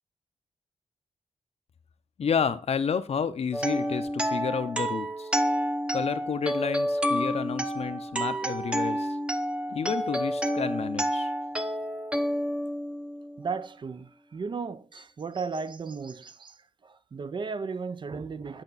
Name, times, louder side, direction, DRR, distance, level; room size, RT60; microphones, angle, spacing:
voice 1, 2.2-5.3 5.9-9.2 9.7-11.3, left 6 dB, 60° left, 0.6 m, -30 dB
sound 1, 3.5-13.4, equal, 10° right, 0.7 m, -29 dB
voice 2, 13.4-16.6 16.8-18.6, right 5 dB, 40° right, 0.5 m, -35 dB
9.0 x 5.6 x 4.0 m
wide cardioid pair, 130°, 12 cm